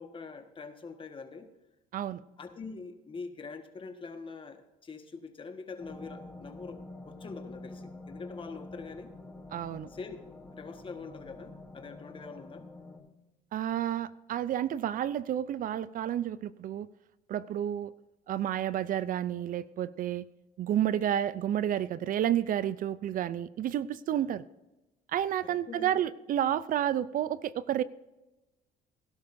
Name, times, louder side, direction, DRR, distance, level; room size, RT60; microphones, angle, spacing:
voice 1, 0.0-1.5 2.4-9.1 9.9-10.2 10.5-12.7 24.1-24.3 25.4-26.0, left 4 dB, 30° left, 7 dB, 1.5 m, -44 dB
sound 1, 5.8-13.0, left 2 dB, 5° left, 4.2 m, -47 dB
voice 2, 9.5-9.9 13.5-16.9 17.3-17.9 18.3-20.3 20.6-24.4 25.1-27.8, right 11 dB, 55° right, 17 dB, 0.5 m, -30 dB
17.5 x 11.5 x 2.7 m, 1.0 s
cardioid pair, 110°, 17 cm